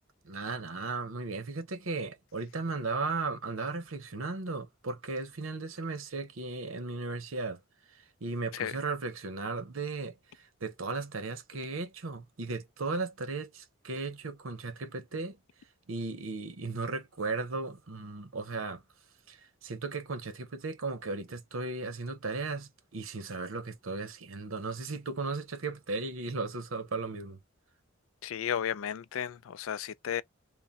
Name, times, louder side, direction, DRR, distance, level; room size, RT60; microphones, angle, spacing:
voice 1, 0.2-7.6 7.9-15.4 15.9-18.8 19.3-27.4, right 3 dB, 90° right, 0.8 m, -36 dB
voice 2, 28.2-30.2, left 9 dB, 85° left, 0.4 m, -34 dB
3.6 x 2.2 x 4.0 m
head